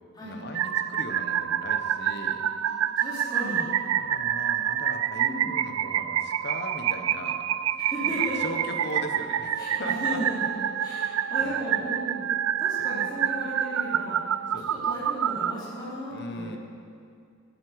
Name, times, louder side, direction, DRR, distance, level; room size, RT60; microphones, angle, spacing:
voice 1, 0.2-2.4 3.9-7.8 8.0-10.8 11.4-11.7 14.5-14.9 16.1-16.6, left 1 dB, 55° left, 4 dB, 1.3 m, -39 dB
sound 1, 0.5-15.5, right 10 dB, 80° right, 0.4 m, -27 dB
voice 2, 2.6-3.7 5.2-5.5 7.8-8.4 9.6-10.4 10.8-12.3 12.6-14.2 14.7-16.6, equal, 20° left, -8 dB, 3.4 m, -35 dB
11.0 x 9.9 x 8.0 m, 2.3 s
head